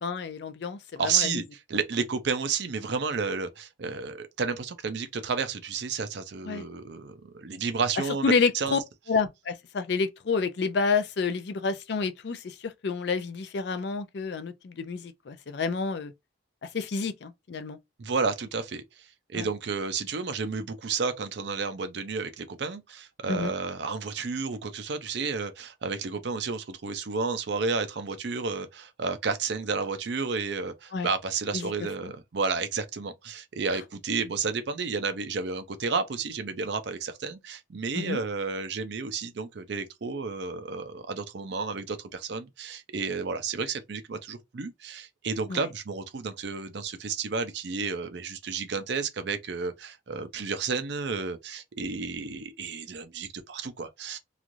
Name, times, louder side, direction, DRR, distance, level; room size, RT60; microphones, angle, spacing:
voice 1, 0.0-1.4 6.4-6.6 8.2-8.8 9.1-16.1 16.6-17.8 19.3-19.5 23.3-23.5 30.9-31.1 31.5-31.7 32.0-32.1 33.7-33.8 37.9-38.2 45.5-45.7, left 4 dB, 60° left, 0.4 m, -29 dB
voice 2, 1.0-8.8 18.0-18.8 19.3-54.2, right 4 dB, 60° right, 0.5 m, -31 dB
3.0 x 2.4 x 2.5 m
head